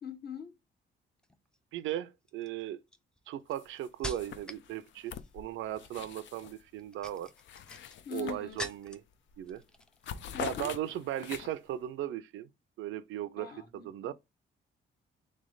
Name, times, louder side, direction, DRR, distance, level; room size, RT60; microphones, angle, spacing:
voice 1, 0.0-0.5 8.0-8.6 10.3-10.7 13.4-14.1, left 8 dB, 50° left, 1.2 m, -42 dB
sound 1, 1.2-1.6 2.3-4.7 5.0-5.5 6.7-9.1 9.5-10.1 10.4-10.6, equal, 5° left, 0.5 m, -45 dB
voice 2, 1.7-2.8 3.3-7.3 8.1-9.0 9.4-9.6 10.4-12.5 12.8-14.1, right 12 dB, 80° right, 0.5 m, -37 dB
sound 2, 3.5-3.9 4.2-6.6 7.0-8.9 9.3-9.5 9.8-11.7, left 9 dB, 70° left, 0.5 m, -44 dB
3.5 x 3.2 x 3.9 m
cardioid pair, 90°, 20 cm